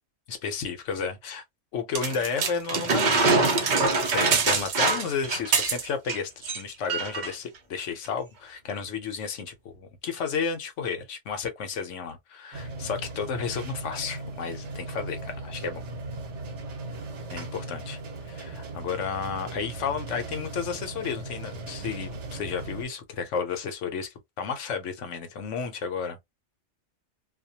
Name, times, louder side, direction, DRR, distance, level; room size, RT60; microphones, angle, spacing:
voice 1, 0.3-1.4 1.7-3.2 4.1-15.8 17.3-26.2, left 6 dB, 80° left, 1.1 m, -32 dB
sound 1, 1.9-6.2 6.4-6.6 6.9-7.3 8.0-8.1, right 4 dB, 50° right, 0.6 m, -24 dB
sound 2, 12.5-22.9, right 2 dB, 75° right, 1.1 m, -38 dB
2.5 x 2.1 x 2.7 m
omnidirectional pair, 1.2 m